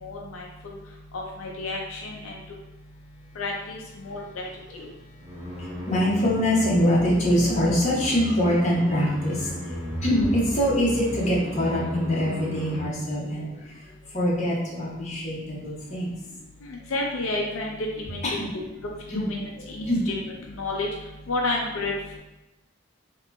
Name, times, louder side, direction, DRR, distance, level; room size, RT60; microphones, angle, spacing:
voice 1, 0.0-0.8 1.1-2.3 3.4-4.5 4.7-4.9 16.9-18.2 19.1-20.1 20.5-20.9 21.3-22.2, left 2 dB, 80° left, -1 dB, 0.5 m, -31 dB
sound 1, 5.2-12.9, left 1 dB, 40° right, 1.2 m, -35 dB
voice 2, 5.6-16.1 18.2-18.5 19.1-19.2 19.5-20.0, equal, 35° left, -6 dB, 1.0 m, -24 dB
2.9 x 2.9 x 3.4 m, 0.96 s
head